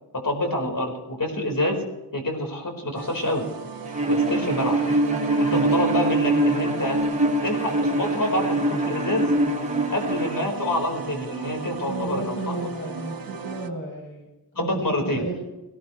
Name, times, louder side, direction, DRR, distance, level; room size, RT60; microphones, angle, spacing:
voice 1, 0.1-1.8 2.1-3.4 4.1-4.8 5.4-7.0 7.4-9.3 9.9-12.6 14.5-15.2, left 1 dB, 50° left, 3 dB, 4.8 m, -27 dB
sound 1, 2.9-13.7, right 5 dB, 50° right, 1.4 m, -36 dB
Bowed string instrument, 3.9-10.5, right 2 dB, 15° right, 1.7 m, -23 dB
voice 2, 11.9-15.3, right 2 dB, 30° left, -5 dB, 7.5 m, -33 dB
19.0 x 18.5 x 3.3 m, 1.0 s
wide cardioid pair, 90°, 43 cm